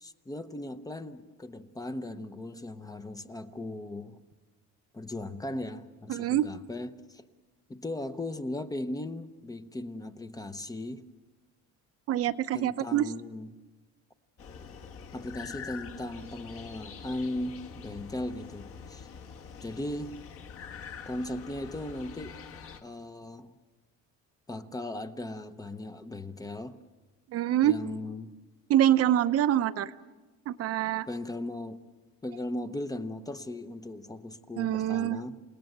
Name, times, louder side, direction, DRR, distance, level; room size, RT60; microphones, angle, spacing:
voice 1, 0.0-4.2 4.9-7.2 7.7-11.0 12.5-13.6 15.1-19.1 19.6-20.1 21.1-22.4 22.8-23.5 24.5-26.8 27.6-28.3 31.1-31.8 32.2-35.4, left 1 dB, 10° left, 9 dB, 0.7 m, -37 dB
voice 2, 6.1-6.5 12.1-13.1 27.3-27.8 28.7-29.9 30.5-31.1 34.6-35.2, right 12 dB, 50° right, 13 dB, 0.8 m, -25 dB
sound 1, 14.4-22.8, left 6 dB, 45° left, 1.6 m, -45 dB
28.5 x 18.5 x 7.9 m, 1.3 s
cardioid pair, 155°, 31 cm